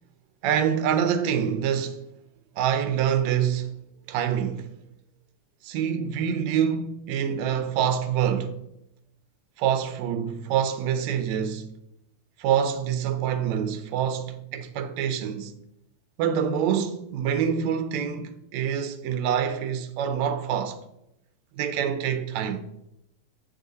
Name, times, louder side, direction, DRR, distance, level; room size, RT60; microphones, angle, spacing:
voice 1, 0.4-2.0 2.6-3.8 4.1-4.7 5.6-8.6 9.6-11.7 12.4-15.5 16.2-20.8 21.6-22.7, right 8 dB, 75° right, 1.9 m, -26 dB
8.5 x 6.5 x 4.0 m
omnidirectional pair, 3.4 m